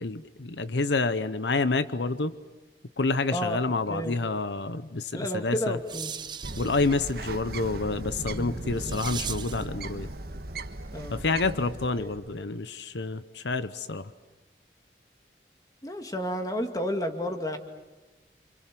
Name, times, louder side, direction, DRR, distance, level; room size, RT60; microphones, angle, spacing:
voice 1, 0.0-2.3 3.0-5.8 6.6-10.1 11.1-14.1, left 3 dB, 80° left, 13 dB, 0.9 m, -28 dB
voice 2, 5.1-6.1 8.3-8.6 10.9-11.2 12.0-12.1 15.8-17.6, equal, 20° left, 5 dB, 2.3 m, -31 dB
sound 1, 5.3-9.7, right 7 dB, 25° right, 0.9 m, -40 dB
Bird, 6.4-12.4, right 2 dB, 60° right, 1.5 m, -37 dB
29.0 x 27.0 x 7.7 m, 1.1 s
head